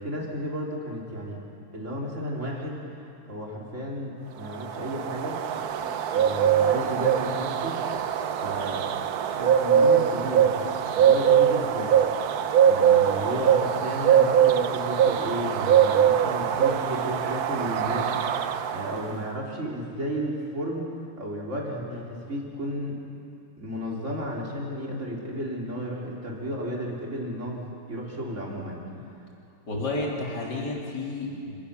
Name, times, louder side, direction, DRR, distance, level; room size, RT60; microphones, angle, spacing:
voice 1, 0.0-1.4 1.7-5.6 6.1-7.8 8.4-8.8 9.3-10.5 11.0-12.0 12.7-20.9 21.2-23.0 23.6-28.8, equal, 35° right, -2 dB, 4.0 m, -33 dB
sound 1, 4.5-19.1, right 9 dB, 60° right, 1.1 m, -22 dB
voice 2, 29.7-31.6, left 2 dB, 50° left, -2 dB, 4.0 m, -31 dB
28.5 x 19.0 x 6.9 m, 2.5 s
omnidirectional pair, 2.3 m